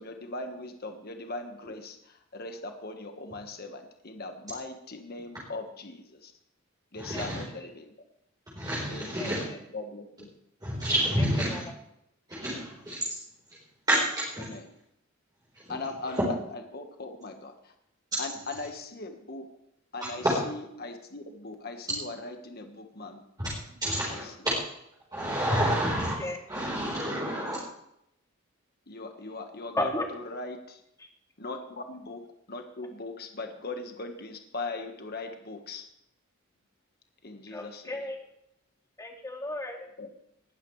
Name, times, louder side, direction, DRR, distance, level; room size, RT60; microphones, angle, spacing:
voice 1, 0.0-6.3 6.9-7.9 8.9-10.3 14.4-14.7 15.7-17.7 18.2-19.5 19.9-23.2 24.1-24.3 25.8-25.9 27.4-27.5 28.9-30.8 31.4-32.2 32.5-35.8 37.2-37.8 40.0-40.1, left 2 dB, 50° left, 5 dB, 1.5 m, -40 dB
voice 2, 7.0-7.4 8.5-9.4 10.6-11.6 12.3-13.0 13.9-14.4 20.2-20.4 23.8-24.6 25.1-26.2 26.5-27.6, equal, 20° right, -7 dB, 4.3 m, -28 dB
voice 3, 9.2-9.6 11.4-11.7 26.2-26.4 29.7-30.1 37.5-38.2 39.0-39.9, left 1 dB, 15° left, 1 dB, 2.2 m, -34 dB
20.0 x 12.0 x 3.3 m, 0.77 s
head